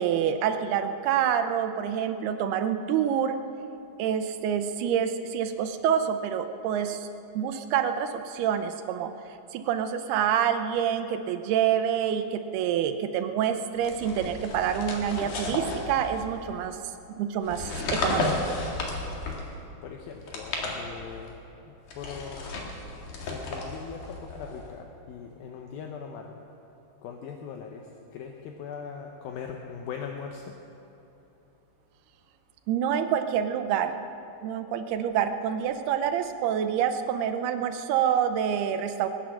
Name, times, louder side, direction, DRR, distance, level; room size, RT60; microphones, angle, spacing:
voice 1, 0.0-3.4 4.0-7.1 7.4-9.1 9.5-16.8 17.1-18.3 32.7-34.0 34.4-39.1, right 9 dB, 80° right, 8 dB, 2.7 m, -27 dB
sound 1, 13.8-16.6 17.4-19.6 20.2-21.3 21.9-24.7, left 2 dB, 55° left, 3.1 m, -33 dB
voice 2, 19.8-21.4 21.7-22.6 23.2-26.4 27.0-30.5, left 6 dB, 75° left, 2 dB, 2.5 m, -40 dB
23.0 x 9.2 x 6.3 m, 2.9 s
omnidirectional pair, 4.5 m